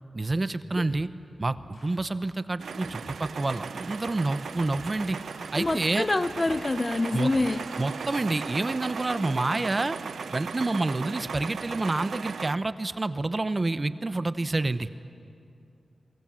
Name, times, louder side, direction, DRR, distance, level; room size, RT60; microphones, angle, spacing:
voice 1, 0.1-1.1 1.4-5.2 5.5-6.1 7.1-7.3 7.8-10.0 10.3-14.9, right 2 dB, 30° right, 13 dB, 0.8 m, -28 dB
sound 1, 0.9-1.2 1.5-2.0 2.8-3.7 4.5-5.9 6.2-7.7, left 2 dB, 75° left, 7.5 m, -50 dB
sound 2, 2.6-12.6, right 6 dB, 90° right, 0.5 m, -37 dB
sound 3, 3.8-9.3, left 2 dB, 50° left, 4.1 m, -56 dB
voice 2, 5.6-7.6, left 2 dB, 30° left, 14 dB, 0.7 m, -26 dB
29.5 x 23.0 x 7.6 m, 2.6 s
wide cardioid pair, 105°, 0 cm